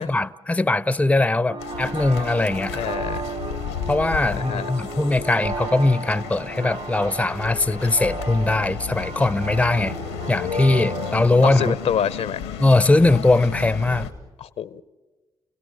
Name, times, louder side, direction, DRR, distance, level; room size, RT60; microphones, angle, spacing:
voice 1, 0.0-2.8 3.9-9.9 10.3-11.7 12.6-14.1, left 2 dB, 10° left, 0.7 m, -20 dB
sound 1, 1.5-11.7, right 4 dB, 55° right, 2.3 m, -34 dB
sound 2, 1.6-14.1, left 8 dB, 90° left, 1.4 m, -33 dB
voice 2, 2.7-3.2 4.4-4.7 11.4-12.5 14.4-14.8, left 8 dB, 60° left, 0.8 m, -27 dB
29.5 x 17.5 x 7.9 m
hypercardioid pair, 40°, 12 cm